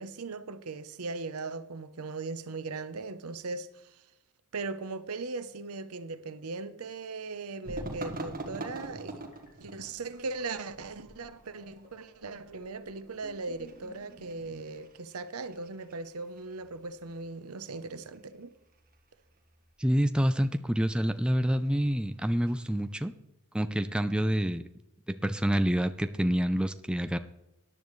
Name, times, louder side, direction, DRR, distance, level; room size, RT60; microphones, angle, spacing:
voice 1, 0.0-4.0 4.5-9.2 9.6-18.5, right 3 dB, 80° right, 0.8 m, -39 dB
sound 1, 7.6-23.0, right 2 dB, 40° right, 1.5 m, -46 dB
sound 2, 9.2-14.7, left 1 dB, 35° left, 3.1 m, -56 dB
voice 2, 19.8-23.1 23.5-24.6 25.2-27.2, equal, 5° right, 0.4 m, -27 dB
14.0 x 10.0 x 3.2 m
head